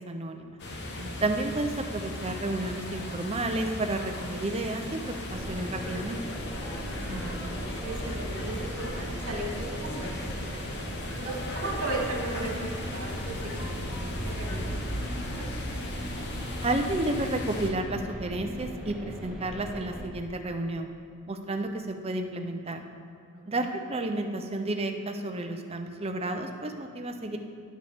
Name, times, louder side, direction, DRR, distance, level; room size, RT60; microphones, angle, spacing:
voice 1, 0.1-0.6 1.2-6.2 16.6-20.9 21.3-22.8 23.5-27.4, right 2 dB, 25° right, 5 dB, 0.6 m, -31 dB
sound 1, 0.6-17.7, left 1 dB, 50° left, 1.1 m, -36 dB
sound 2, 5.3-20.0, equal, 5° right, 1.3 m, -39 dB
voice 2, 7.0-10.6 11.1-15.5 23.6-23.8, right 2 dB, 70° right, -3 dB, 2.5 m, -37 dB
17.5 x 6.4 x 3.6 m, 2.4 s
head